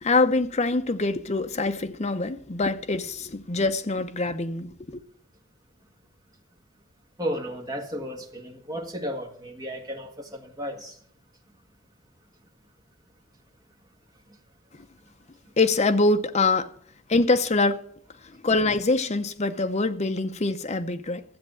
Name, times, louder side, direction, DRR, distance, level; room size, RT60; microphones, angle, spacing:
voice 1, 0.0-5.0 15.6-16.7 17.1-17.8 18.4-21.2, left 3 dB, 35° left, 0.7 m, -24 dB
voice 2, 7.2-11.0 14.3-14.4, equal, 20° right, 1.8 m, -34 dB
13.0 x 7.3 x 7.7 m
head